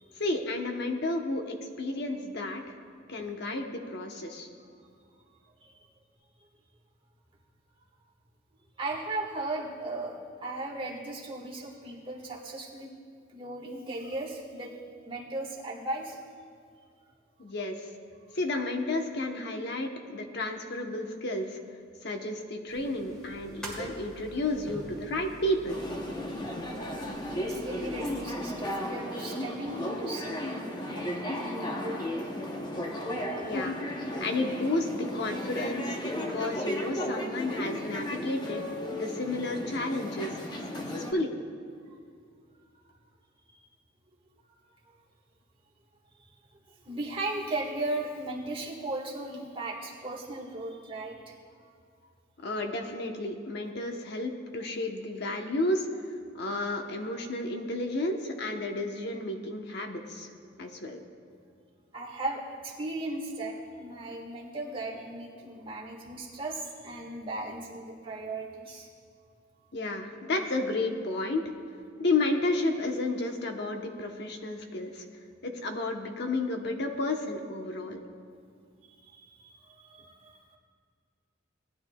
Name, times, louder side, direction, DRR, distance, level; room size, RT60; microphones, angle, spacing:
voice 1, 0.2-2.6 3.1-4.5 17.4-17.9 18.3-21.6 22.0-25.8 33.4-33.8 34.2-38.6 38.9-40.4 40.9-41.3 52.4-55.9 56.3-60.3 60.6-61.0 69.7-71.4 72.0-75.1 75.4-78.0, left 2 dB, 60° left, 3 dB, 1.0 m, -32 dB
voice 2, 8.8-12.9 13.3-14.7 15.0-16.2 27.3-32.0 33.1-33.7 43.5-43.6 44.8-44.9 46.7-51.3 61.9-68.9 78.9-80.6, right 2 dB, 25° right, -3 dB, 1.6 m, -37 dB
sound 1, 22.7-28.3, right 1 dB, 5° left, 2.5 m, -45 dB
sound 2, 25.7-41.1, left 1 dB, 20° left, 0.9 m, -35 dB
18.5 x 10.5 x 2.3 m, 2.3 s
head